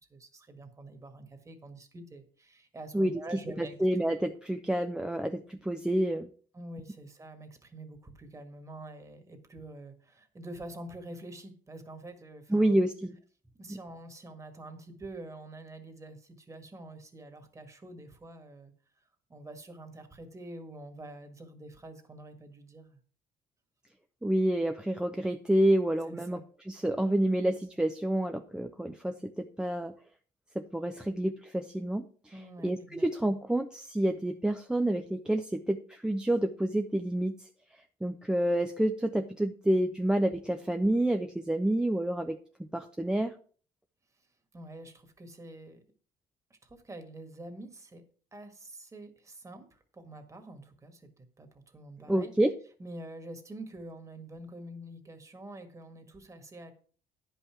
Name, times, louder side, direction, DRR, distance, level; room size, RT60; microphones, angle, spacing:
voice 1, 0.1-3.8 6.5-12.8 13.5-18.7 19.3-23.0 26.1-26.4 32.3-33.4 44.5-45.8 46.5-48.0 48.3-52.3 52.8-56.7, right 1 dB, 20° right, 6 dB, 1.8 m, -46 dB
voice 2, 3.6-6.3 12.5-13.2 13.7-13.8 24.2-26.4 26.7-29.9 30.6-32.1 32.6-37.3 38.0-43.3 52.1-52.5, right 1 dB, 5° right, 7 dB, 0.6 m, -28 dB
9.9 x 5.6 x 5.9 m, 0.43 s
cardioid pair, 110°, 15 cm